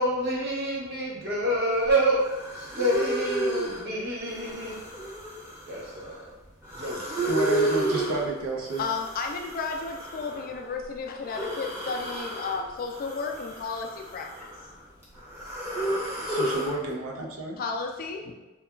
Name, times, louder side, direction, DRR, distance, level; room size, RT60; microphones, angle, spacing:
voice 1, 0.0-5.0 5.6-6.3 6.7-7.5, right 1 dB, 50° right, -4 dB, 0.7 m, -28 dB
sound 1, 1.9-2.0 2.2-3.8 4.2-6.2 6.6-8.3 8.7-10.6 11.2-12.6 12.9-14.7 15.0-16.7, right 2 dB, 10° right, 0.7 m, -32 dB
voice 2, 7.3-8.8 16.3-17.6, right 2 dB, 90° right, -2 dB, 0.5 m, -30 dB
voice 3, 8.8-14.5 17.6-18.3, left 4 dB, 45° left, 3 dB, 0.3 m, -33 dB
2.8 x 2.3 x 2.3 m, 1.1 s
head